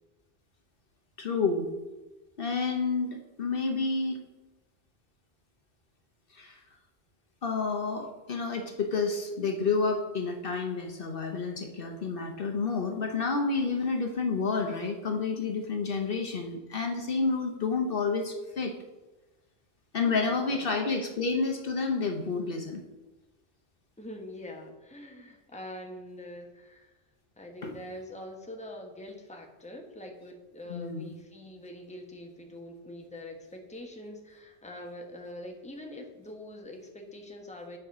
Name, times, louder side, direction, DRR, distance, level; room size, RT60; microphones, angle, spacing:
voice 1, 1.2-1.7 2.4-4.2 6.3-6.6 7.4-18.7 19.9-22.8 27.6-27.8 30.7-31.1, left 4 dB, 55° left, 3 dB, 1.1 m, -30 dB
voice 2, 15.8-16.3 20.0-20.7 24.0-27.0 27.4-37.8, left 1 dB, 5° left, 1 dB, 1.1 m, -44 dB
8.8 x 4.9 x 6.0 m, 1.1 s
omnidirectional pair, 1.2 m